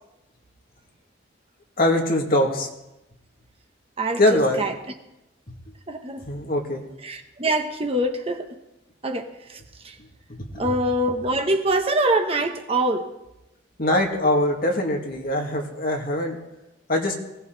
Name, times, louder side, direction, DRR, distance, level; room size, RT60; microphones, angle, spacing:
voice 1, 1.8-2.7 4.2-4.7 6.2-6.8 10.3-10.7 13.8-16.4 16.9-17.1, left 1 dB, 45° left, 1 dB, 2.3 m, -22 dB
voice 2, 4.0-4.7 5.9-6.3 7.0-8.5 9.0-10.0 10.6-13.1, right 1 dB, 30° right, 5 dB, 1.1 m, -24 dB
21.0 x 17.0 x 4.0 m, 0.93 s
head